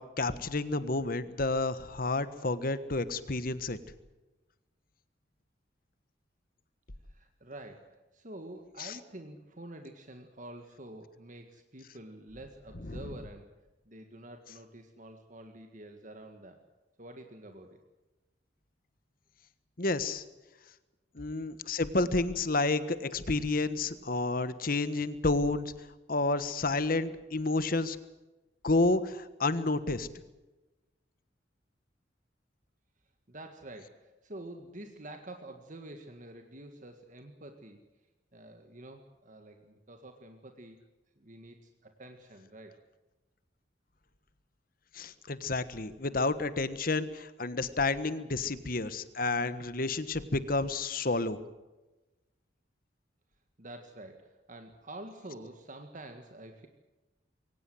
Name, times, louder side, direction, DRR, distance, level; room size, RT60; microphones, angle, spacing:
voice 1, 0.0-3.8 8.8-8.9 19.8-20.2 21.1-25.7 26.1-28.0 28.6-30.1 44.9-51.4, left 3 dB, 50° left, 13 dB, 1.4 m, -30 dB
voice 2, 7.1-13.5 13.9-16.6 17.0-17.8 21.2-21.3 33.3-37.8 38.3-40.8 41.2-42.8 53.6-56.7, right 1 dB, 45° right, 5 dB, 1.8 m, -48 dB
22.5 x 19.0 x 7.8 m, 1.1 s
head